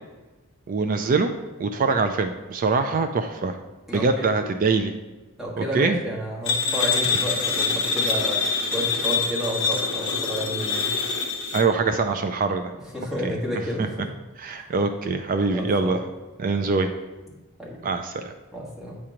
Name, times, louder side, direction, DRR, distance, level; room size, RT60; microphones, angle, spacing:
voice 1, 0.7-1.3 1.6-3.6 3.9-4.9 5.6-6.0 11.5-12.7 13.2-13.9 14.4-16.0 16.4-16.9 17.8-18.3, right 4 dB, 40° right, 7 dB, 0.3 m, -24 dB
voice 2, 3.9-4.3 5.4-8.4 8.7-10.9 12.9-14.0 15.5-16.0 17.6-17.8 18.5-19.0, equal, ahead, -5 dB, 1.4 m, -30 dB
sound 1, 6.5-11.6, left 5 dB, 55° left, 0.9 m, -25 dB
8.3 x 3.0 x 5.0 m, 1.2 s
head